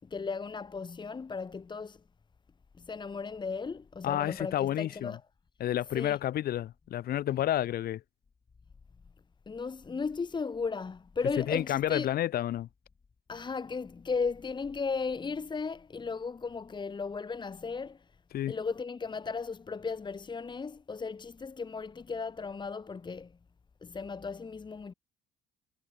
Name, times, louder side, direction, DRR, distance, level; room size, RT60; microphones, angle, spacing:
voice 1, 0.0-2.0 2.8-5.2 5.9-6.2 9.5-12.1 13.3-18.1 18.5-23.3 23.8-24.9, left 5 dB, 25° left, 3.5 m, -36 dB
voice 2, 4.0-5.2 5.6-8.0 11.4-12.7 18.3-18.5, left 12 dB, 65° left, 3.3 m, -30 dB
cardioid pair, 110°, 17 cm